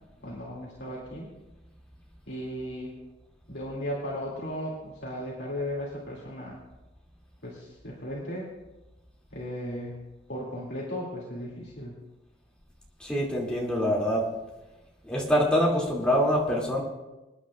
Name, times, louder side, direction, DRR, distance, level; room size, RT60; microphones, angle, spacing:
voice 1, 0.2-1.3 2.3-2.9 3.5-6.6 7.4-8.5 9.3-10.0 10.3-12.0, equal, 60° left, -5 dB, 2.6 m, -36 dB
voice 2, 13.0-14.2 15.0-16.8, equal, 5° left, -4 dB, 2.6 m, -25 dB
27.5 x 9.7 x 2.5 m, 1.0 s
head